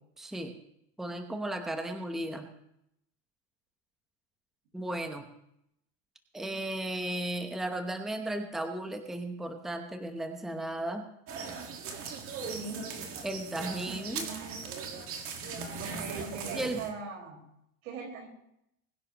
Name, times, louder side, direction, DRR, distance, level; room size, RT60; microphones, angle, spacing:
voice 1, 0.2-0.6 1.0-2.5 4.7-5.3 6.3-11.0 13.2-14.3 16.5-16.8, right 1 dB, ahead, 5 dB, 0.8 m, -35 dB
sound 1, 11.3-16.9, right 5 dB, 35° right, 1.8 m, -39 dB
voice 2, 12.5-12.9 15.8-17.4 17.8-18.3, right 4 dB, 90° right, 2 dB, 5.0 m, -40 dB
21.5 x 10.5 x 3.0 m, 0.78 s
supercardioid pair, 155°, 40 cm